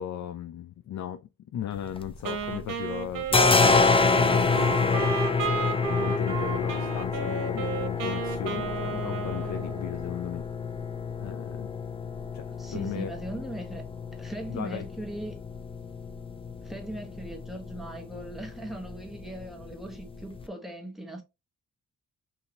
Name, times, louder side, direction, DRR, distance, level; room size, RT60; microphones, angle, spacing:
voice 1, 0.0-10.4 11.2-11.7 12.3-13.1 14.5-14.9, left 9 dB, 60° left, 0.5 m, -36 dB
sound 1, 1.7-2.7 2.9-20.4, left 4 dB, 15° left, 0.6 m, -28 dB
Wind instrument woodwind instrument, 2.3-10.2, right 5 dB, 85° right, 1.0 m, -33 dB
voice 2, 12.6-13.8 14.2-15.4 16.6-21.2, right 1 dB, ahead, 1.3 m, -39 dB
5.6 x 2.8 x 3.0 m
cardioid pair, 95°, 31 cm